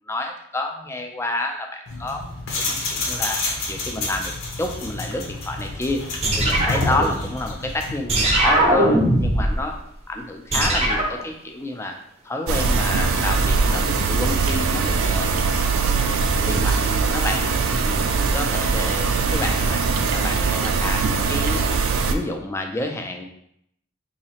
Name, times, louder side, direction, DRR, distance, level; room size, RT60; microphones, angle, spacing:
voice 1, 0.1-2.2 2.6-3.4 3.7-4.3 4.6-6.0 6.4-9.7 10.1-12.0 12.2-15.3 15.8-17.4 17.8-19.8 20.1-21.6 22.1-23.2, left 1 dB, 15° left, 3 dB, 0.4 m, -29 dB
sound 1, 1.9-8.0, left 2 dB, 75° left, 0.7 m, -29 dB
sound 2, 6.2-7.6 8.1-9.6 10.5-11.2, right 1 dB, 30° right, 0.6 m, -20 dB
sound 3, 12.5-22.1, right 4 dB, 80° right, 0.4 m, -21 dB
4.1 x 2.8 x 2.8 m, 0.73 s
head